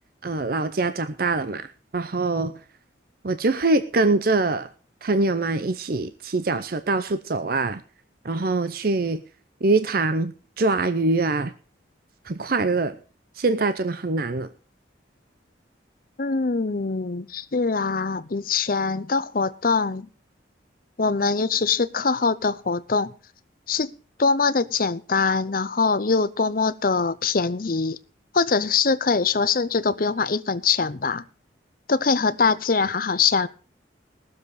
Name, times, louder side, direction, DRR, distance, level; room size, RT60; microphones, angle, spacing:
voice 1, 0.2-1.7 1.9-2.5 3.2-4.7 5.0-7.8 8.2-9.2 9.6-11.5 12.3-12.9 13.4-14.5, right 3 dB, 50° right, 0.6 m, -23 dB
voice 2, 16.2-20.1 21.0-23.1 23.7-23.9 24.2-28.0 28.3-31.2 31.9-33.5, left 4 dB, 45° left, 0.6 m, -23 dB
19.0 x 7.3 x 4.8 m
head